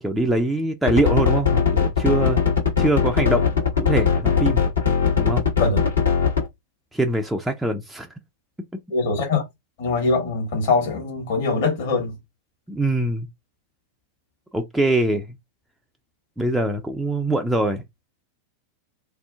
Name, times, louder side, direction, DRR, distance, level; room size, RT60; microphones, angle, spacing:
voice 1, 0.0-2.4 2.8-4.6 5.2-5.4 6.9-8.1 12.7-13.3 14.5-15.3 16.4-17.8, right 2 dB, 5° right, 0.3 m, -23 dB
sound 1, 0.9-6.4, left 7 dB, 75° left, 1.3 m, -19 dB
voice 2, 8.9-9.4 9.8-12.1, left 3 dB, 55° left, 1.4 m, -22 dB
2.6 x 2.4 x 2.2 m
figure-of-eight pair, 90°, 0 cm